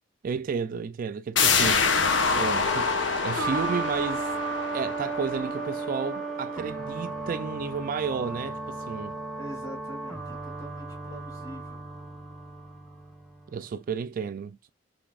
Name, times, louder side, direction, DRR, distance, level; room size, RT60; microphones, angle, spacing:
voice 1, 0.2-1.9 2.4-4.3 4.7-9.2 13.5-14.7, right 5 dB, 45° right, 0.3 m, -32 dB
sound 1, 1.4-6.8 7.2-7.3, left 5 dB, 80° left, 1.0 m, -26 dB
sound 2, 2.6-13.6, right 3 dB, ahead, 1.0 m, -35 dB
voice 2, 9.4-11.8, equal, 20° left, 3.1 m, -43 dB
5.9 x 3.3 x 2.3 m
head